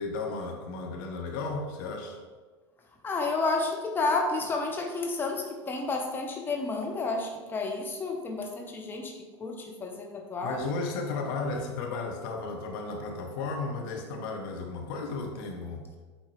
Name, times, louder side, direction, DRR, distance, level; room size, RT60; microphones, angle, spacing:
voice 1, 0.0-2.2 10.4-15.8, left 3 dB, 50° left, 2 dB, 1.0 m, -34 dB
voice 2, 3.0-10.7, left 3 dB, 15° left, 1 dB, 0.8 m, -31 dB
8.6 x 4.2 x 3.1 m, 1.4 s
figure-of-eight pair, 85°, 15 cm